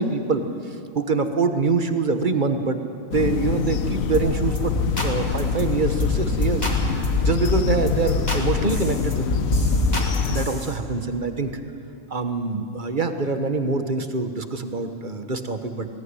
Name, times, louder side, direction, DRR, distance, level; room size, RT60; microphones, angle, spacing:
voice 1, 0.0-4.7 5.0-6.7 7.2-9.5 10.3-11.6 12.1-15.9, right 4 dB, 40° right, 7 dB, 1.3 m, -25 dB
sound 1, 3.1-10.5, left 7 dB, 90° left, 1.3 m, -25 dB
sound 2, 4.1-4.3 4.6-5.1 5.4-5.6 6.0-6.2 6.4-7.5 7.9-8.4 8.7-10.7, left 1 dB, 30° left, 2.9 m, -25 dB
20.5 x 17.5 x 9.7 m, 2.5 s
omnidirectional pair, 1.4 m